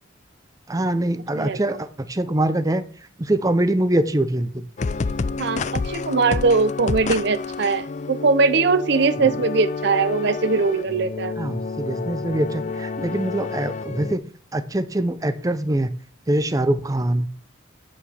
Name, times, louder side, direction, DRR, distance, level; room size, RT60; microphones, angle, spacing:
voice 1, 0.7-2.8 3.2-4.7 9.2-9.3 11.4-14.2 14.5-15.9 16.3-17.3, right 1 dB, 20° right, 0.6 m, -23 dB
voice 2, 1.3-1.8 5.4-11.3, right 4 dB, 60° right, 0.6 m, -21 dB
sound 1, 4.8-14.2, left 4 dB, 40° left, 0.4 m, -29 dB
8.4 x 7.5 x 3.4 m
head